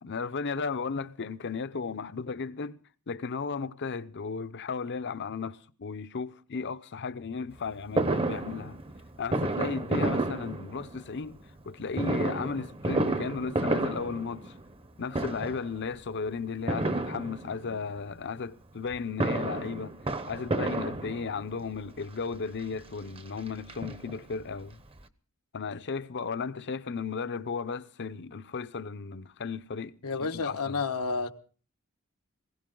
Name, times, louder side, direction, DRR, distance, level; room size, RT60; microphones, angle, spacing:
voice 1, 0.0-2.8 3.1-8.8 9.2-11.4 11.6-14.5 15.0-20.0 20.3-24.8 25.5-30.8, left 5 dB, 55° left, 0.7 m, -35 dB
Fireworks, 8.0-11.2 11.9-14.9 15.1-15.7 16.7-17.8 18.9-21.6 22.3-22.4 22.7-22.8 23.2-24.4 24.7-24.8 25.0-25.1, right 2 dB, 25° right, 0.9 m, -31 dB
voice 2, 30.0-31.3, left 4 dB, 90° left, 1.2 m, -30 dB
20.0 x 16.5 x 3.9 m
head